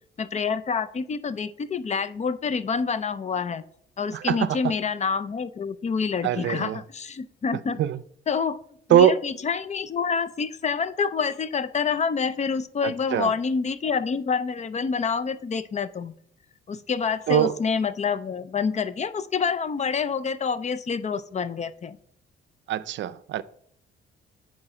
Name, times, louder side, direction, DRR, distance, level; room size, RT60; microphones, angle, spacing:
voice 1, 0.2-3.6 4.0-7.8 8.3-8.6 8.9-16.1 16.7-22.0, left 5 dB, 35° left, 0.5 m, -27 dB
voice 2, 4.1-4.6 6.2-6.8 7.8-8.0 8.9-9.1 12.8-13.3 17.3-17.5 22.7-23.4, right 11 dB, 70° right, 0.5 m, -22 dB
8.8 x 3.9 x 4.9 m
cardioid pair, 90°, 20 cm